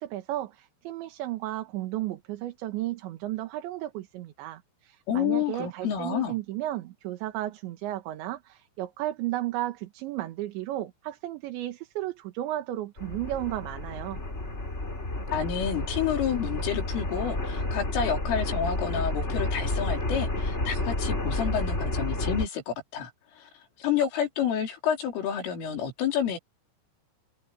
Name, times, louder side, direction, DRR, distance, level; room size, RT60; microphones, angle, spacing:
voice 1, 0.0-14.2, right 14 dB, 70° right, 3.5 m, -34 dB
voice 2, 5.1-6.4 15.3-23.1 23.4-23.5 23.8-26.4, left 8 dB, 75° left, 6.5 m, -29 dB
sound 1, 13.0-22.5, left 2 dB, 15° left, 3.2 m, -30 dB
omnidirectional pair, 5.8 m